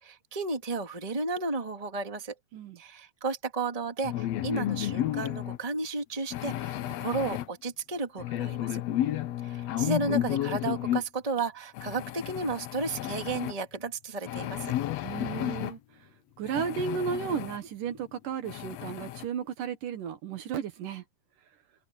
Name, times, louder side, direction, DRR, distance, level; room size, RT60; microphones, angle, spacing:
voice 1, 0.0-2.3 2.8-8.8 9.4-14.7, right 3 dB, 10° right, 2.1 m, -33 dB
sound 1, 4.0-5.6 6.3-7.5 8.2-11.0 11.7-13.5 14.3-15.7 16.4-17.6 18.0-18.1 18.4-19.3, left 13 dB, 75° left, 1.5 m, -32 dB
voice 2, 15.0-15.8 16.4-21.0, right 7 dB, 70° right, 2.9 m, -34 dB
open air
omnidirectional pair, 4.0 m